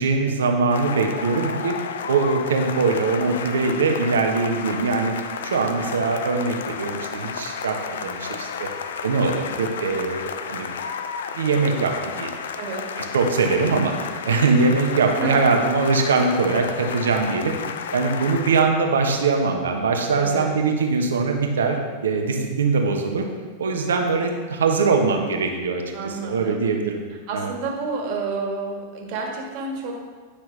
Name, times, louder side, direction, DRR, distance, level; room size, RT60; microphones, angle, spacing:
voice 1, 0.0-1.7 2.1-5.1 5.4-8.7 9.0-10.7 11.3-12.3 13.0-17.5 17.9-23.2 23.6-27.0 27.3-27.5, right 4 dB, 75° right, 3 dB, 1.0 m, -22 dB
sound 1, 0.7-18.6, left 6 dB, 70° left, 0.5 m, -32 dB
voice 2, 12.6-12.9 15.0-15.5 20.1-20.5 25.9-26.6 27.3-29.9, right 3 dB, 50° right, 0 dB, 1.7 m, -30 dB
9.9 x 5.8 x 3.3 m, 1.5 s
figure-of-eight pair, 95°, 0 cm